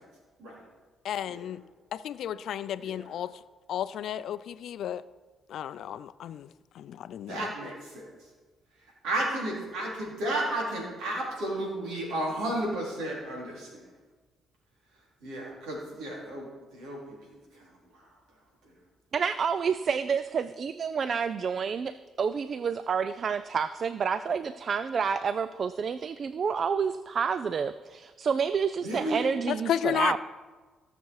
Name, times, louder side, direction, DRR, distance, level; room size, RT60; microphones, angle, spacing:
voice 1, 1.0-1.6 1.9-3.3 3.7-5.0 5.5-6.5 6.7-7.5 29.5-30.2, left 10 dB, 75° left, 15 dB, 0.4 m, -32 dB
voice 2, 7.3-8.1 9.0-13.8 15.2-17.0 17.5-17.7 28.8-29.2, right 1 dB, 85° right, -3 dB, 3.8 m, -33 dB
voice 3, 19.1-30.2, right 6 dB, 50° right, 13 dB, 0.4 m, -29 dB
16.5 x 6.8 x 4.8 m, 1.3 s
cardioid pair, 90°, 0 cm